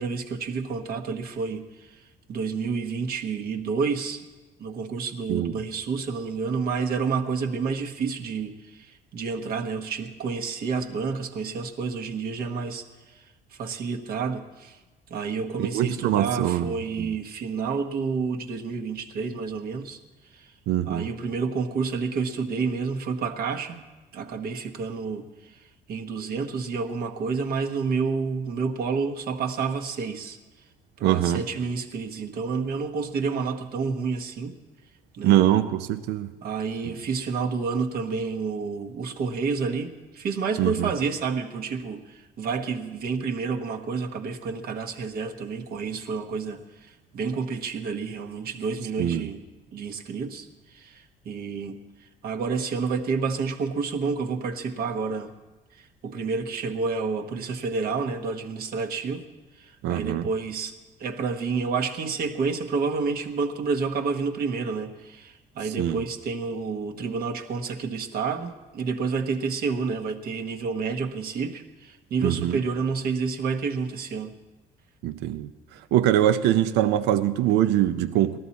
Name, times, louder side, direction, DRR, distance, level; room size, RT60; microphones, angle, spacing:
voice 1, 0.0-4.2 4.6-14.8 15.1-20.0 20.3-20.5 20.9-23.9 24.1-30.4 31.0-34.6 35.1-35.4 36.4-49.4 49.7-55.3 55.7-59.3 59.6-60.7 61.0-74.3, right 5 dB, 65° right, 4 dB, 1.2 m, -29 dB
voice 2, 15.6-16.7 17.0-17.1 20.7-21.1 31.0-31.4 35.2-36.3 40.6-40.9 49.0-49.3 59.8-60.3 65.8-66.0 72.2-72.6 75.0-75.5 75.9-78.4, right 12 dB, 90° right, 11 dB, 0.6 m, -23 dB
18.5 x 13.5 x 4.2 m, 1.2 s
cardioid pair, 110°, 17 cm